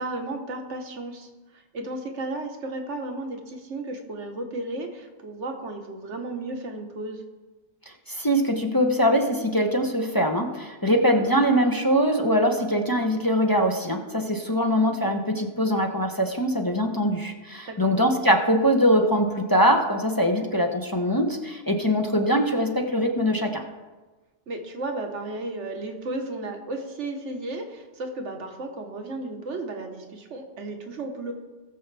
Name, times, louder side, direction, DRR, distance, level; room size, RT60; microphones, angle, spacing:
voice 1, 0.0-7.2 10.9-11.2 17.7-17.9 20.3-20.5 24.5-31.3, right 2 dB, 80° right, 4 dB, 1.5 m, -34 dB
voice 2, 8.1-23.6, equal, 20° left, 2 dB, 0.8 m, -22 dB
19.0 x 7.1 x 3.4 m, 1.2 s
omnidirectional pair, 1.2 m